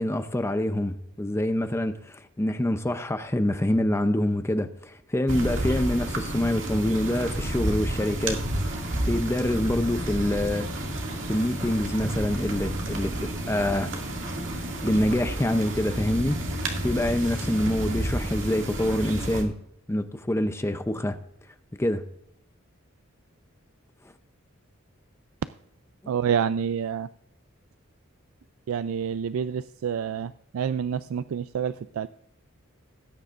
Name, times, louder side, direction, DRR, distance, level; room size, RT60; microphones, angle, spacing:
voice 1, 0.0-8.4 9.0-10.7 11.3-13.9 14.8-19.6 19.9-21.2 21.8-22.0 26.0-26.1, left 1 dB, 15° left, 0.5 m, -26 dB
sound 1, 5.3-19.4, right 1 dB, 65° right, 2.2 m, -30 dB
voice 2, 26.1-27.1 28.7-32.1, right 7 dB, 80° right, 0.3 m, -28 dB
18.0 x 9.3 x 2.5 m
head